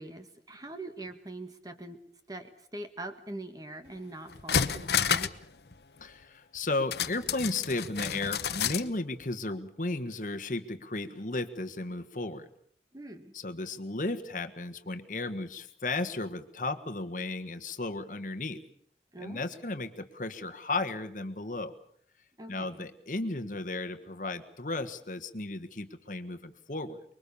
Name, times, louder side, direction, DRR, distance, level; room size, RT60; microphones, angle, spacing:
voice 1, 0.0-2.0 2.3-5.3 12.9-13.3 19.1-19.5 22.4-22.9, right 2 dB, 20° right, 7 dB, 1.8 m, -43 dB
sound 1, 3.9-4.0 4.3-5.4 5.7-5.8 6.9-8.9 9.2-9.3, left 7 dB, 65° left, 1.0 m, -30 dB
voice 2, 6.0-12.5 13.3-18.6 19.2-21.7 22.5-27.0, left 2 dB, 45° left, 9 dB, 1.5 m, -34 dB
25.0 x 22.5 x 7.0 m, 0.63 s
head